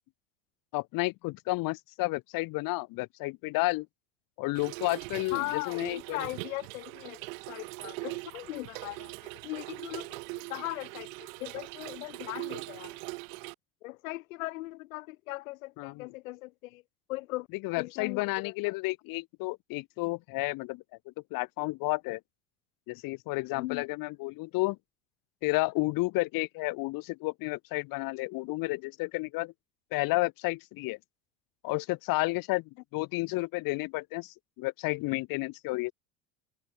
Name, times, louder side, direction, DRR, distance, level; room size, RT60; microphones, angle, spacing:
voice 1, 0.7-3.9 4.4-6.3 15.8-16.1 17.6-22.2 22.9-24.8 25.4-29.5 29.9-31.0 31.6-35.9, left 23 dB, 55° left, 1.1 m, -31 dB
Trickle dribble / Fill (with liquid), 4.5-13.5, right 28 dB, 75° right, 1.7 m, -41 dB
voice 2, 5.3-7.2 7.5-10.2 10.5-11.1 11.4-12.9 13.8-16.8 17.1-17.5 17.8-18.7 23.5-23.8, left 20 dB, 85° left, 1.4 m, -39 dB
supercardioid pair, 105°, 40 cm